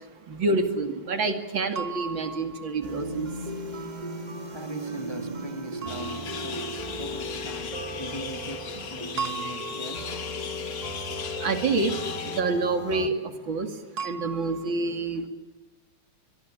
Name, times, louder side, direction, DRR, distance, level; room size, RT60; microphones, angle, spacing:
voice 1, 0.3-3.3 11.4-12.0 12.2-13.1 13.5-13.7 14.0-15.2, right 3 dB, 65° right, 7 dB, 3.2 m, -27 dB
sound 1, 1.8-3.2 5.8-7.0 9.2-10.6 14.0-14.7, right 6 dB, 50° right, 1.7 m, -37 dB
sound 2, 2.8-13.1, equal, 25° right, 1.5 m, -36 dB
voice 2, 4.5-10.1, equal, 15° left, 6 dB, 1.7 m, -41 dB
sound 3, 5.9-12.4, left 6 dB, 55° left, 2.2 m, -37 dB
24.0 x 22.5 x 8.8 m, 1.1 s
omnidirectional pair, 2.3 m